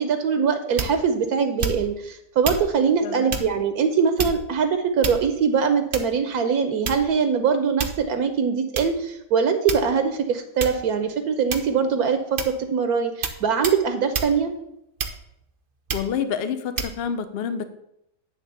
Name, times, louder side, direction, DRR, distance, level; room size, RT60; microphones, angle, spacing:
voice 1, 0.0-14.5, right 6 dB, 70° right, 8 dB, 1.2 m, -22 dB
sound 1, 0.8-1.1 1.6-2.0 2.4-2.7 3.3-3.5 4.2-4.6 5.0-5.5 5.9-6.2 6.9-7.2 7.8-8.1 8.8-8.9 9.7-10.1 10.6-10.9 11.5-11.8 12.4-12.6 13.2-13.4 13.6-13.8 14.1-14.3 15.0-15.4 15.9-16.1 16.8-16.9, right 5 dB, 50° right, 0.7 m, -29 dB
voice 2, 3.0-3.4 15.9-17.6, left 7 dB, 60° left, 10 dB, 0.6 m, -28 dB
9.2 x 3.6 x 6.6 m, 0.80 s
omnidirectional pair, 1.7 m